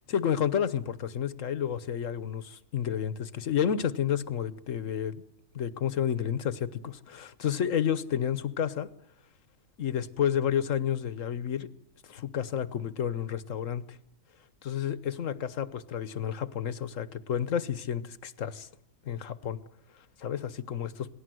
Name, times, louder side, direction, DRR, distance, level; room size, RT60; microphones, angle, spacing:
voice 1, 0.1-5.2 5.5-8.9 9.8-11.7 12.1-13.8 14.6-18.7 19.0-19.6 20.2-21.1, left 9 dB, 65° left, 1.5 m, -30 dB
27.5 x 18.5 x 7.8 m
omnidirectional pair, 1.5 m